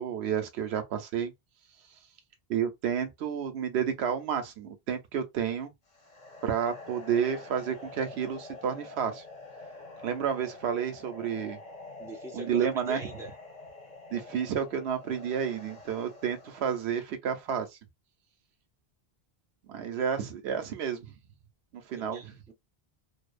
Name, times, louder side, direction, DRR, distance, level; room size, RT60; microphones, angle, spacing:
voice 1, 0.0-1.3 2.5-5.7 6.4-9.2 10.0-11.6 12.3-13.0 14.1-17.7 19.7-21.1 21.9-22.2, right 8 dB, 85° right, 0.9 m, -30 dB
sound 1, 5.9-17.0, left 3 dB, 45° left, 0.7 m, -47 dB
voice 2, 12.0-13.3 19.9-20.0 22.0-22.5, equal, 5° right, 0.5 m, -42 dB
2.7 x 2.0 x 2.4 m
omnidirectional pair, 1.1 m